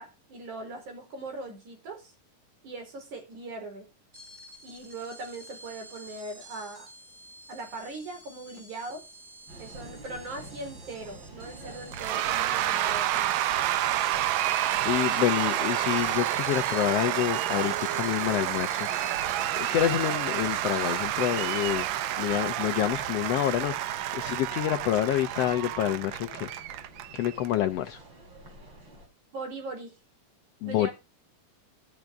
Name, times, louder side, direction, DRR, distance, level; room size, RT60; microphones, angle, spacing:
voice 1, 0.0-2.1 2.6-3.9 4.6-6.9 7.5-9.0 9.6-13.5 29.3-29.9 30.7-30.9, right 2 dB, 65° right, 5 dB, 5.9 m, -40 dB
sound 1, 4.1-23.3, right 1 dB, 15° right, 3.7 m, -48 dB
sound 2, 9.5-29.1, right 2 dB, 35° right, 4.8 m, -46 dB
Cheering / Applause / Crowd, 11.9-27.6, right 13 dB, 85° right, 2.5 m, -29 dB
voice 2, 14.4-18.9 19.6-21.8 22.2-26.5 27.1-28.0 30.6-30.9, left 12 dB, 75° left, 8 dB, 1.5 m, -28 dB
13.0 x 12.0 x 3.6 m, 0.27 s
omnidirectional pair, 3.7 m